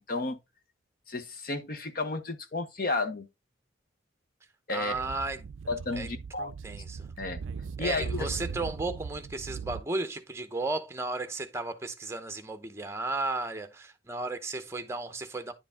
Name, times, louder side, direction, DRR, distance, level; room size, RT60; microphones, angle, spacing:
voice 1, 0.1-0.4 1.1-3.3 4.7-5.0 5.7-6.5 7.2-7.4 7.8-8.3, left 3 dB, 45° left, 0.8 m, -32 dB
voice 2, 4.7-5.5 5.9-6.1 6.6-7.1 7.8-15.5, right 2 dB, 15° right, 0.9 m, -34 dB
Speech / Wind, 4.9-9.8, right 5 dB, 85° right, 0.4 m, -39 dB
10.0 x 4.7 x 3.6 m
head